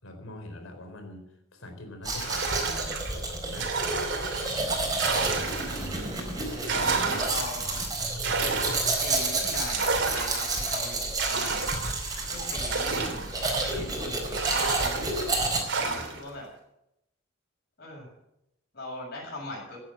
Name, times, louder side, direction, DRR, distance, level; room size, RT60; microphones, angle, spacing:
voice 1, 0.0-1.2 1.5-3.7, left 1 dB, 80° left, 6 dB, 4.1 m, -44 dB
Domestic sounds home sounds, 2.0-15.6, right 2 dB, 20° right, 4.3 m, -30 dB
sound 1, 2.2-6.0 6.4-13.9 14.3-16.3, right 4 dB, 60° right, 3.1 m, -31 dB
voice 2, 5.0-5.4 6.7-7.8 8.7-8.8 9.0-11.8 12.2-16.5 17.8-18.1 18.7-19.8, left 2 dB, 50° left, -4 dB, 7.7 m, -40 dB
16.5 x 10.5 x 7.6 m, 0.82 s
head